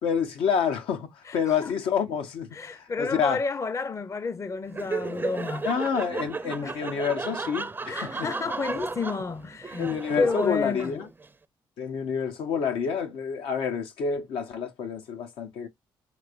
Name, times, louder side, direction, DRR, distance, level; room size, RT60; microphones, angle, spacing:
voice 1, 0.0-3.4 5.6-8.3 9.8-11.1 11.8-15.7, left 6 dB, 85° left, 0.7 m, -28 dB
voice 2, 1.3-1.7 2.5-5.7 6.6-6.8 7.9-11.0, left 4 dB, 35° left, 0.5 m, -31 dB
Laughter, 4.7-11.3, right 4 dB, 25° right, 0.4 m, -34 dB
3.3 x 3.2 x 2.4 m
cardioid pair, 65°, 9 cm